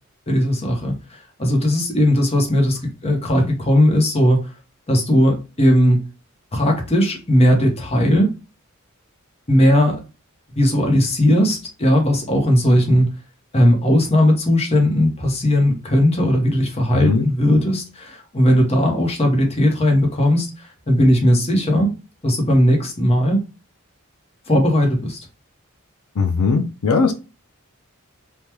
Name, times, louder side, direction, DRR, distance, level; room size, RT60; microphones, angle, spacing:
voice 1, 0.3-4.5 4.9-6.0 6.5-8.3 9.5-10.0 10.5-13.1 13.5-21.9 22.2-23.4 24.5-25.2, equal, 30° left, 0.8 m, -17 dB
voice 2, 26.2-27.1, left 4 dB, 85° left, 0.5 m, -18 dB
3.4 x 2.2 x 2.9 m
head